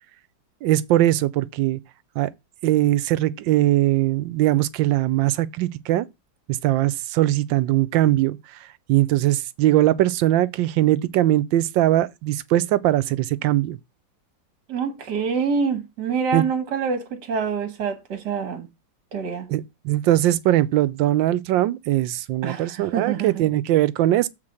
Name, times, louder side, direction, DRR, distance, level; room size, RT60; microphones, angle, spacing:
voice 1, 0.6-1.8 2.2-2.3 2.6-6.1 6.6-8.4 8.9-13.8 16.3-16.4 19.5-24.3, right 14 dB, 85° right, 1.4 m, -20 dB
voice 2, 14.7-18.7 19.1-19.5 22.4-23.4, right 6 dB, 65° right, 1.8 m, -26 dB
7.4 x 4.2 x 6.4 m
omnidirectional pair, 2.0 m